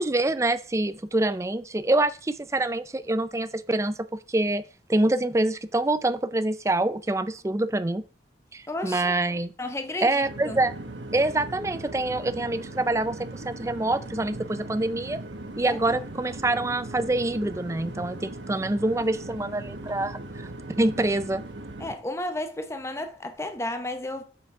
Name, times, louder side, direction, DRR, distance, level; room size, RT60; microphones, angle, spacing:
voice 1, 0.0-4.6 4.9-8.0 8.5-9.5 10.0-10.7 11.1-15.2 15.6-20.2 20.8-21.4, right 2 dB, 15° right, 0.4 m, -26 dB
voice 2, 8.7-9.1 9.6-10.6 15.7-15.8 21.8-24.2, left 1 dB, 15° left, 0.7 m, -33 dB
sound 1, 10.2-21.9, right 2 dB, 90° right, 1.0 m, -39 dB
8.4 x 5.1 x 4.7 m
head